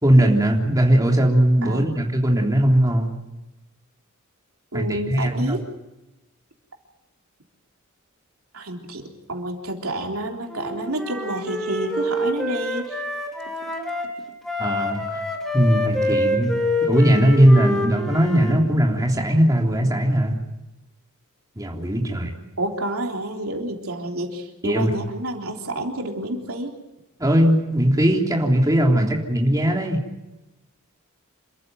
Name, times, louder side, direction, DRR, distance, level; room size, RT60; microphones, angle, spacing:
voice 1, 0.0-3.1 4.7-5.6 14.6-15.2 15.5-16.5 16.8-20.4 21.5-22.4 24.6-24.9 27.2-30.0, right 1 dB, 15° right, 0 dB, 3.5 m, -19 dB
voice 2, 1.6-2.0 4.7-5.7 8.5-9.0 9.3-13.0 22.6-26.8, right 1 dB, 75° right, 1 dB, 3.5 m, -29 dB
Wind instrument woodwind instrument, 10.5-14.1 14.4-18.6, left 1 dB, ahead, 3.5 m, -26 dB
28.0 x 14.0 x 9.3 m, 1.0 s
head